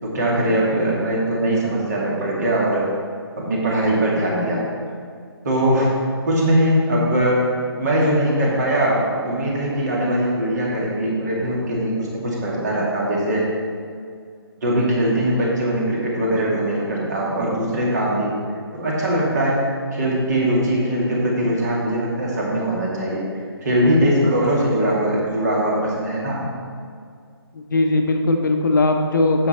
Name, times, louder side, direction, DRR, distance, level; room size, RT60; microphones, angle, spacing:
voice 1, 0.0-2.9 3.4-4.6 5.4-5.9 6.2-7.4 7.8-13.5 14.6-18.3 18.7-19.6 19.9-23.2 23.6-26.4, right 1 dB, 40° right, -4 dB, 2.5 m, -21 dB
voice 2, 27.5-29.5, left 2 dB, 50° left, 4 dB, 0.8 m, -19 dB
9.5 x 7.3 x 4.3 m, 2.1 s
figure-of-eight pair, 140°, 13 cm